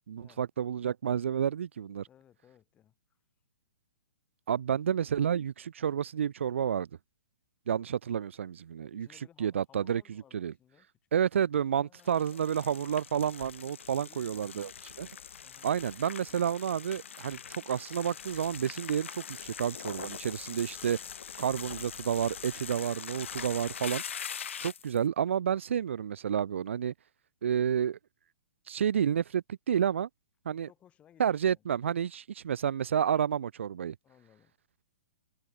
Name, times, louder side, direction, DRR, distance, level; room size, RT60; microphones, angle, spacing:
voice 1, 0.1-2.1 4.5-6.9 7.7-9.1 9.4-10.0 10.3-10.5 11.1-14.7 15.0-15.1 15.6-21.0 21.4-24.0 24.6-26.9 27.4-28.0 28.7-30.1 30.5-30.7 31.2-33.9, right 8 dB, 75° right, 0.5 m, -30 dB
voice 2, 2.1-3.2 8.9-11.1 11.8-12.9 14.0-14.6 15.4-15.7 30.7-31.7 34.0-34.6, left 10 dB, 20° left, 4.1 m, -62 dB
sound 1, 12.0-25.0, left 8 dB, 75° left, 1.6 m, -43 dB
hypercardioid pair, 145°, 7 cm